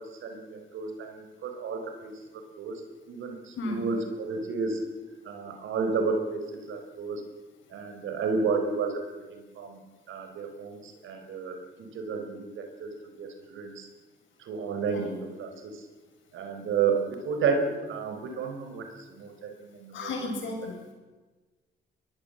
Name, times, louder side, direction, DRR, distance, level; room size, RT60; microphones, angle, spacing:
voice 1, 0.0-2.1 2.6-2.8 3.1-4.8 5.2-7.2 7.7-9.8 10.1-12.9 13.2-13.9 14.4-15.8 16.3-20.1, right 5 dB, 80° right, 6 dB, 4.5 m, -32 dB
voice 2, 19.9-20.9, left 2 dB, 75° left, 3 dB, 7.3 m, -34 dB
24.5 x 21.5 x 8.0 m, 1.3 s
cardioid pair, 90°, 20 cm